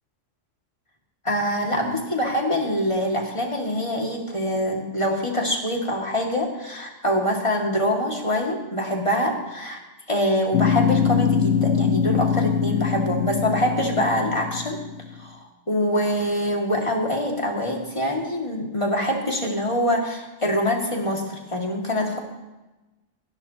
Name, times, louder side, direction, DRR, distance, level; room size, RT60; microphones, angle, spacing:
voice 1, 1.2-9.8 10.1-14.8 15.2-22.2, left 1 dB, 25° left, 0 dB, 2.1 m, -25 dB
sound 1, 10.5-15.1, left 7 dB, 65° left, 1.0 m, -23 dB
29.0 x 10.5 x 2.9 m, 1.1 s
omnidirectional pair, 1.2 m